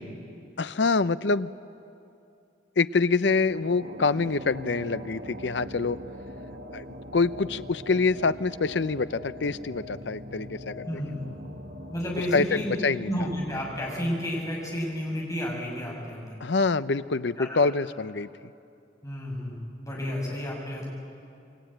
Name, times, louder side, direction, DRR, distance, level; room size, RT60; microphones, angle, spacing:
voice 1, 0.6-1.5 2.8-6.0 6.7-6.8 7.1-10.9 12.3-13.1 16.4-18.3, left 4 dB, 85° left, 14 dB, 0.7 m, -25 dB
sound 1, 3.3-15.9, left 1 dB, 75° right, 1.8 m, -43 dB
voice 2, 10.8-11.2 11.9-12.7 13.0-16.4 17.4-17.5 19.0-20.9, equal, 20° left, -2 dB, 6.8 m, -31 dB
28.0 x 23.0 x 9.1 m, 2.6 s
head